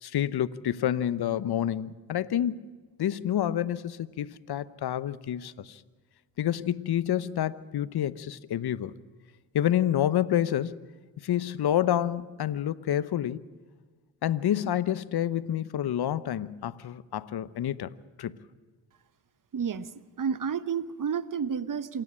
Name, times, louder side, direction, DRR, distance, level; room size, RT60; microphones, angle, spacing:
voice 1, 0.0-2.7 3.0-5.8 6.4-8.9 9.5-10.8 11.2-13.4 14.2-17.9 18.2-18.4, left 11 dB, 55° left, 0.9 m, -28 dB
voice 2, 19.5-19.9 20.2-22.0, right 7 dB, 45° right, 1.1 m, -30 dB
27.0 x 10.0 x 9.8 m
supercardioid pair, 50°, 45 cm